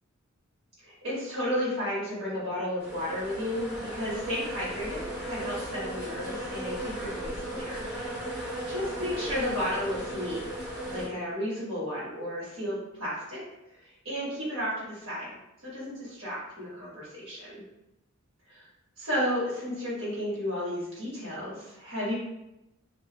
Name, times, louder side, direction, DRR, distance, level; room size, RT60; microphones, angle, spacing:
voice 1, 0.8-7.9 8.7-10.4 10.9-13.4 13.8-15.3 15.6-17.6 19.0-22.1, equal, 80° right, -6 dB, 1.2 m, -33 dB
sound 1, 2.8-11.1, right 1 dB, 5° right, 0.8 m, -36 dB
2.4 x 2.3 x 2.8 m, 0.92 s
head